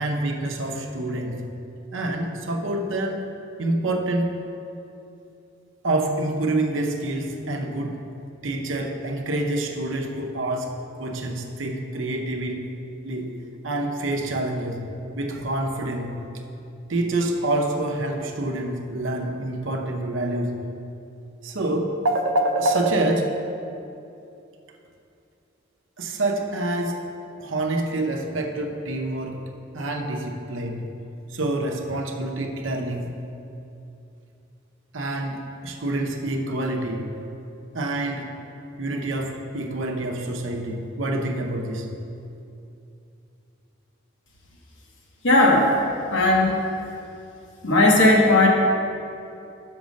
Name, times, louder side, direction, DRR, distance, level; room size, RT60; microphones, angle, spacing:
voice 1, 0.0-1.4 1.9-3.2 3.6-4.4 5.8-8.0 8.4-12.7 13.0-13.4 13.6-14.9 15.2-16.1 16.9-20.6 21.4-23.4 26.0-27.0 27.4-29.4 29.7-30.9 31.3-33.2 34.9-37.1 37.7-38.3 38.8-41.9, right 2 dB, 80° right, 2 dB, 0.7 m, -27 dB
voice 2, 45.2-45.7 46.1-46.6 47.6-48.5, left 2 dB, 70° left, -1 dB, 1.1 m, -16 dB
6.0 x 5.2 x 6.3 m, 2.7 s
head